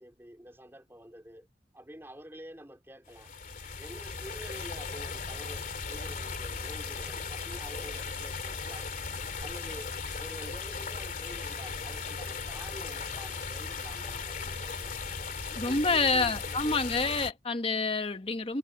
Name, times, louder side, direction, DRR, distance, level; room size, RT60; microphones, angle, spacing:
voice 1, 0.0-1.5 1.7-3.3 3.8-8.9 9.4-15.1 15.5-16.9, equal, 15° right, 3.1 m, -48 dB
sound 1, 3.1-17.3, left 4 dB, 50° left, 2.9 m, -37 dB
voice 2, 15.6-18.6, left 3 dB, 30° left, 1.2 m, -28 dB
head